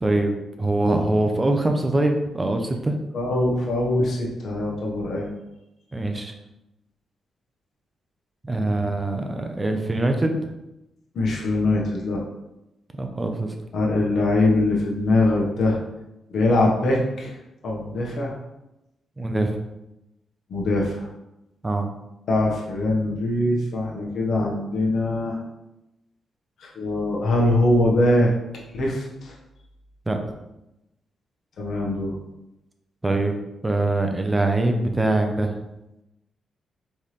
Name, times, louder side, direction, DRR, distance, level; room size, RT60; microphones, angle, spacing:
voice 1, 0.0-3.0 5.9-6.3 8.4-10.5 12.9-13.5 19.2-19.6 21.6-21.9 30.1-30.2 33.0-33.3 33.6-35.5, right 2 dB, 20° right, 4 dB, 0.7 m, -23 dB
voice 2, 3.1-5.3 11.1-12.2 13.7-15.8 16.3-17.3 17.6-18.3 20.5-21.1 22.3-25.4 26.6-28.3 28.7-29.3 31.6-32.2, left 2 dB, 65° left, -2 dB, 1.2 m, -22 dB
4.4 x 3.5 x 3.2 m, 0.92 s
cardioid pair, 75°, 0 cm